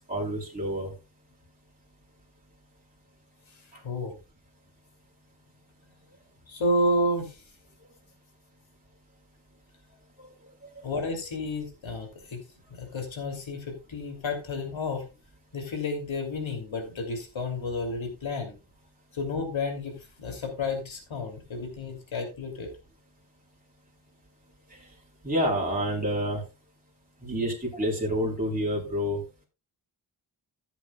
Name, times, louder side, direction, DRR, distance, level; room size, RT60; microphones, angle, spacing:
voice 1, 0.1-0.9 10.2-10.3 10.6-10.7 25.2-26.4 27.2-29.2, equal, 15° right, -3 dB, 3.7 m, -28 dB
voice 2, 6.5-7.4 10.8-12.4 12.7-15.1 15.5-18.5 19.1-22.7, left 2 dB, 75° left, 4 dB, 3.0 m, -31 dB
15.0 x 8.0 x 2.3 m, 0.29 s
wide cardioid pair, 105°, 47 cm